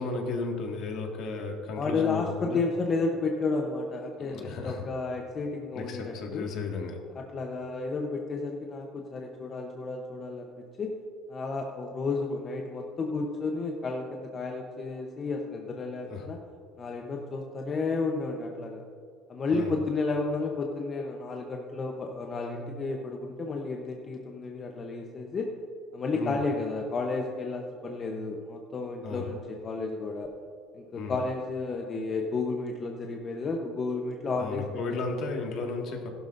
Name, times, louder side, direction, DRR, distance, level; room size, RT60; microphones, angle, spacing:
voice 1, 0.0-2.6 4.2-4.9 5.7-7.0 16.1-16.3 19.5-19.7 26.1-26.4 29.0-29.3 30.9-31.2 34.4-36.1, left 3 dB, 55° left, 2 dB, 1.8 m, -34 dB
voice 2, 1.8-6.5 7.1-10.9 11.3-16.4 16.8-18.8 19.3-25.5 25.9-30.3 30.7-34.6, left 3 dB, 30° left, 2 dB, 0.8 m, -32 dB
15.5 x 12.0 x 2.6 m, 2.2 s
cardioid pair, 135°, 0 cm